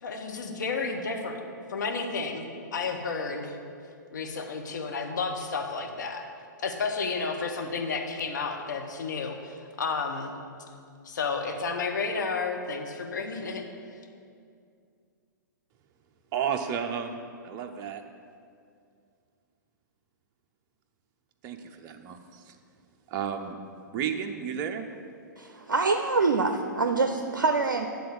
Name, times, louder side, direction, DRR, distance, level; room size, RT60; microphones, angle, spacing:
voice 1, 0.0-1.4 1.7-3.6 4.1-6.2 6.6-10.3 11.0-13.7, left 4 dB, 65° left, 3 dB, 1.0 m, -31 dB
voice 2, 16.3-18.0 21.4-22.5 23.1-23.6 23.9-24.9, right 7 dB, 30° right, 6 dB, 0.6 m, -32 dB
voice 3, 25.4-27.9, right 3 dB, 75° right, 5 dB, 0.5 m, -25 dB
9.3 x 3.9 x 6.9 m, 2.3 s
figure-of-eight pair, 115°, 11 cm